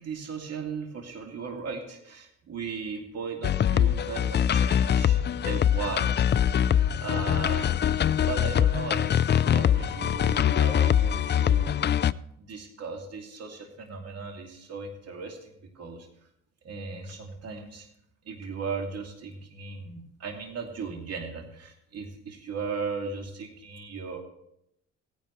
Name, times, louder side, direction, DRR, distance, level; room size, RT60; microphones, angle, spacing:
voice 1, 0.0-6.6 7.0-7.8 8.2-11.9 12.4-16.1 16.6-17.9 18.2-24.2, right 5 dB, 55° right, 2 dB, 2.5 m, -37 dB
sound 1, 3.4-12.1, left 9 dB, 35° left, 0.4 m, -23 dB
17.0 x 10.5 x 3.2 m, 0.74 s
cardioid pair, 90°, 30 cm